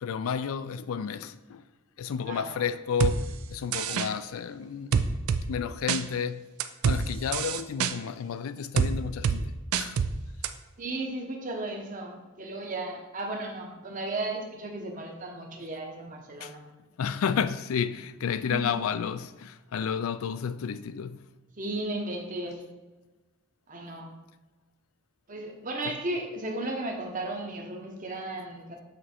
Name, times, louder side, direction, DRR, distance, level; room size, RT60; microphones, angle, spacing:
voice 1, 0.0-1.6 2.0-3.3 3.5-5.1 5.5-6.5 6.8-10.0 16.4-16.6 17.0-21.3 25.9-26.0, left 7 dB, 75° left, 0.3 m, -31 dB
voice 2, 2.3-2.6 10.8-16.7 18.5-18.6 21.6-22.6 23.7-24.1 25.3-28.8, right 2 dB, 35° right, 0.9 m, -35 dB
sound 1, 3.0-3.2 3.7-4.1 4.9-5.4 5.9-6.0 6.6-7.0 7.3-7.9 8.8-8.9 9.2-9.4 9.7-10.1 10.4-10.5, right 7 dB, 80° right, 0.4 m, -25 dB
7.7 x 3.2 x 4.3 m
head